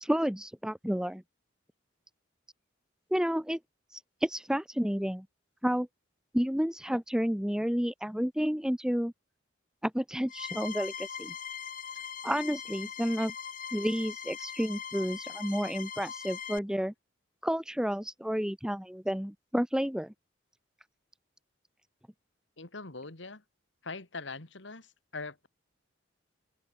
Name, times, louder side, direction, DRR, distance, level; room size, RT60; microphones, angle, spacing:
voice 1, 0.0-1.2 3.1-3.6 3.9-5.3 5.6-5.9 6.3-9.1 9.8-11.3 12.2-13.3 13.7-16.9 17.4-20.1, equal, 5° right, 0.8 m, -31 dB
sound 1, 10.3-16.6, left 8 dB, 45° left, 2.7 m, -41 dB
voice 2, 22.6-23.4 23.8-25.5, left 3 dB, 65° left, 2.2 m, -42 dB
open air
head